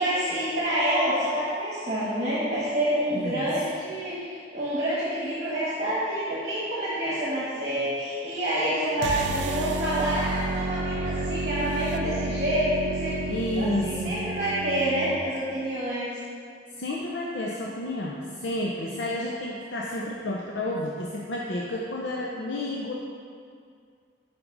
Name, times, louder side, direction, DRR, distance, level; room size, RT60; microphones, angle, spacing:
voice 1, 0.0-16.1, right 1 dB, 40° right, -9 dB, 1.3 m, -27 dB
voice 2, 3.1-3.6 13.3-14.2 16.7-22.9, left 1 dB, 75° left, -3 dB, 0.6 m, -31 dB
sound 1, 9.0-15.2, right 2 dB, 70° right, 0.4 m, -31 dB
5.9 x 5.2 x 5.3 m, 2.2 s
head